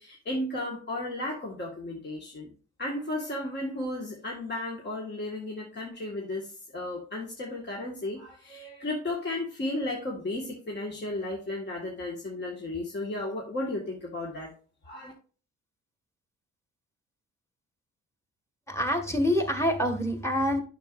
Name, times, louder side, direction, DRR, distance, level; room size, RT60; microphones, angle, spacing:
voice 1, 0.0-2.5 2.8-14.5 14.8-15.1, left 2 dB, 35° left, -1 dB, 1.7 m, -34 dB
voice 2, 18.7-20.6, equal, 10° left, 5 dB, 1.8 m, -26 dB
8.9 x 6.7 x 2.5 m, 0.38 s
cardioid pair, 90°, 30 cm